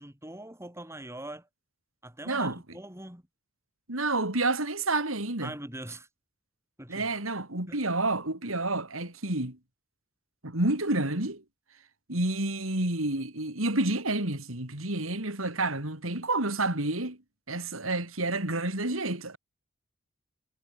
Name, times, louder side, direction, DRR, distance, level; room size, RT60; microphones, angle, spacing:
voice 1, 0.0-1.5 2.0-3.2 5.4-6.1 6.8-7.1 7.7-7.8, right 1 dB, 15° right, 5.8 m, -42 dB
voice 2, 2.3-2.6 3.9-5.5 6.9-9.6 10.4-11.4 12.1-17.2 17.5-19.4, right 2 dB, 90° right, 5.2 m, -29 dB
head